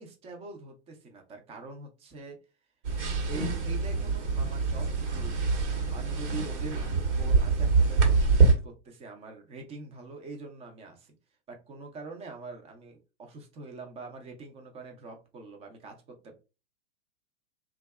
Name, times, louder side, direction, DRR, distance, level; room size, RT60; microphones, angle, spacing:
voice 1, 0.0-2.4 3.3-11.1 11.5-16.3, right 3 dB, 15° right, 4 dB, 0.5 m, -44 dB
sound 1, 2.8-8.5, right 4 dB, 75° right, 1.1 m, -25 dB
2.6 x 2.3 x 2.2 m, 0.30 s
hypercardioid pair, 115°, 36 cm